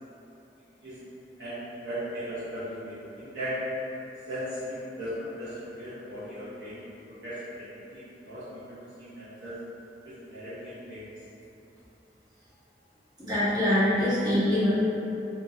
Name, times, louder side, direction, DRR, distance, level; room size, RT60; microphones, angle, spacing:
voice 1, 1.4-3.7 4.3-9.5 10.0-11.1, equal, 90° right, -13 dB, 0.7 m, -37 dB
voice 2, 13.2-14.7, left 1 dB, 25° right, -13 dB, 1.1 m, -24 dB
3.7 x 2.2 x 2.3 m, 3.0 s
head